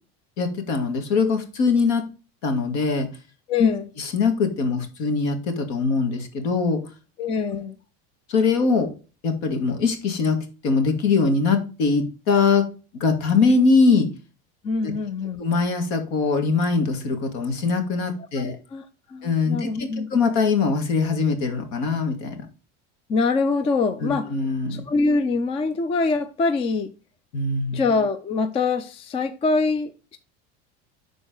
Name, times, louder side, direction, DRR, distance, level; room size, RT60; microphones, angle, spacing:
voice 1, 0.4-2.0 2.4-3.1 3.6-3.7 4.0-6.8 8.3-8.9 9.2-10.4 10.6-12.6 13.0-14.1 14.8-14.9 15.4-18.6 19.2-22.5 24.0-24.8 27.3-27.8, left 4 dB, 60° left, 2.2 m, -22 dB
voice 2, 3.5-3.9 7.2-7.8 14.6-15.4 18.4-20.1 23.1-24.3 24.7-26.9 27.7-30.2, left 4 dB, 20° left, 0.4 m, -24 dB
11.0 x 4.0 x 3.8 m
cardioid pair, 150°, 31 cm